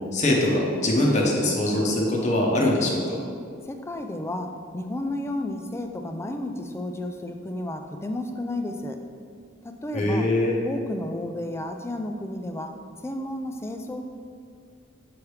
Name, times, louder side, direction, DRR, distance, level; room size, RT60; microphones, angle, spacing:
voice 1, 0.1-3.2 9.9-10.6, left 1 dB, 35° left, -3 dB, 0.8 m, -22 dB
voice 2, 3.7-9.0 9.6-10.3 10.6-12.7 13.0-14.0, left 1 dB, 15° left, 5 dB, 0.3 m, -32 dB
7.1 x 3.3 x 4.7 m, 2.2 s
head